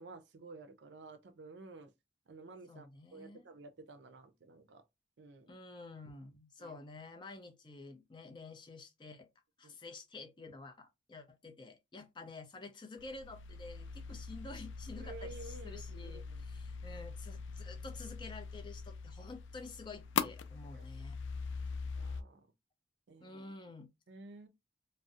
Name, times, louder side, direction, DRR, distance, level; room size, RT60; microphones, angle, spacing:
voice 1, 0.0-1.9 2.3-4.8 5.2-5.5 6.6-6.8 9.6-9.8 15.0-16.4 20.7-20.9 21.9-22.4 23.1-23.4 24.1-24.5, right 3 dB, 70° right, 0.4 m, -52 dB
voice 2, 2.7-3.5 5.5-9.3 9.6-21.2 23.2-23.9, left 3 dB, 25° left, 0.4 m, -50 dB
sound 1, 13.0-22.2, left 5 dB, 90° left, 0.3 m, -42 dB
2.6 x 2.0 x 2.4 m
head